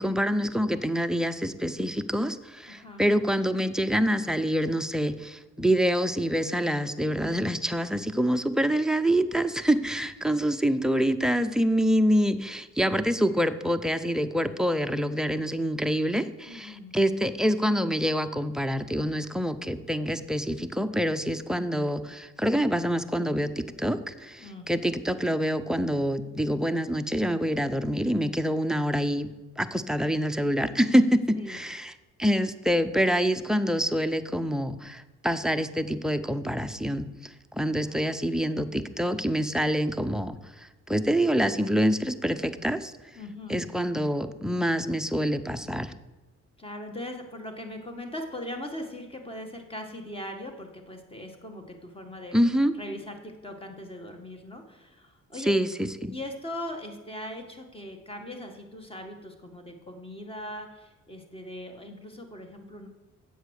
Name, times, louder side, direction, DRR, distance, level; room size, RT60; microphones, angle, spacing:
voice 1, 0.0-29.3 29.6-31.9 32.2-42.9 43.5-45.9 52.3-52.7 55.5-56.1, equal, ahead, 8 dB, 0.6 m, -26 dB
voice 2, 2.7-3.0 16.5-16.9 24.4-24.7 31.4-31.6 37.9-38.0 43.2-43.7 46.6-52.4 52.7-55.6 56.1-62.9, left 1 dB, 20° left, 4 dB, 1.7 m, -40 dB
8.0 x 7.7 x 6.5 m, 1.1 s
cardioid pair, 90°, 30 cm